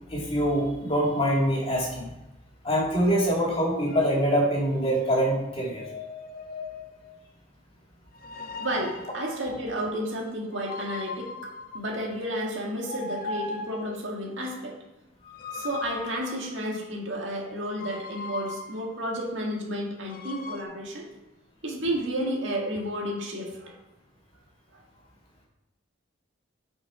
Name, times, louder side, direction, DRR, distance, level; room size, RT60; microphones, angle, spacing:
voice 1, 0.1-2.1 2.6-5.8, equal, 30° left, -4 dB, 2.1 m, -24 dB
sound 1, 3.9-4.2 5.6-7.2 8.1-9.3 10.5-12.3 12.8-14.0 15.2-16.8 17.6-19.0 20.0-20.6, left 4 dB, 45° left, 0.6 m, -39 dB
voice 2, 8.6-14.8 15.5-21.1 21.6-23.8 24.7-24.8, equal, 65° right, -1 dB, 1.8 m, -32 dB
7.7 x 5.6 x 4.7 m, 0.99 s
head